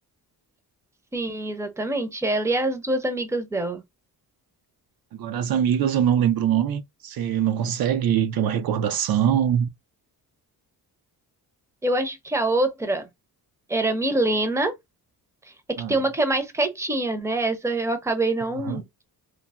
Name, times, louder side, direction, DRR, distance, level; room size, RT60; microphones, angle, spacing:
voice 1, 1.1-3.8 11.8-13.1 13.7-14.7 15.9-18.8, right 2 dB, 5° right, 0.6 m, -25 dB
voice 2, 5.1-9.7 15.8-16.0 18.6-18.8, right 9 dB, 70° right, 0.5 m, -23 dB
3.2 x 2.1 x 2.4 m
cardioid pair, 125°, 38 cm